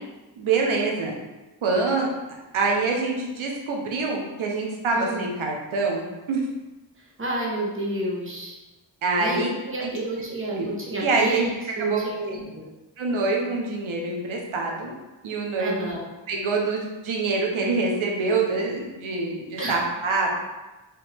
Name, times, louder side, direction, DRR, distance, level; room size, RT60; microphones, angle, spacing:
voice 1, 0.4-1.1 1.6-2.1 2.5-6.4 9.0-9.5 9.8-9.9 10.6-10.7 11.0-12.0 12.3-12.4 13.0-14.9 15.2-15.9 16.3-20.4, right 3 dB, 85° right, 0 dB, 1.0 m, -25 dB
voice 2, 4.9-5.3 7.2-8.5 9.2-11.5 11.8-12.7 15.6-16.0 19.6-19.8, right 1 dB, 25° right, -4 dB, 1.2 m, -30 dB
4.7 x 2.9 x 3.5 m, 1.1 s
cardioid pair, 80°, 47 cm